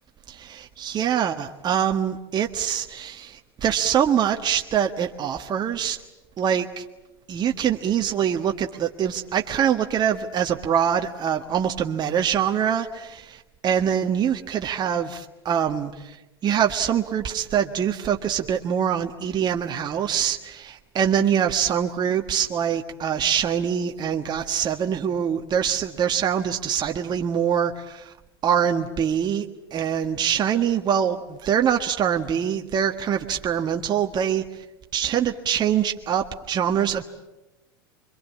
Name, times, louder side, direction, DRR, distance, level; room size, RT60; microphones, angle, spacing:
voice 1, 0.3-6.0 6.4-6.8 7.3-16.2 16.4-28.1 28.4-34.6 34.9-37.0, right 8 dB, 35° right, 4 dB, 1.5 m, -24 dB
26.0 x 24.0 x 8.6 m, 1.0 s
hypercardioid pair, 85°, 12 cm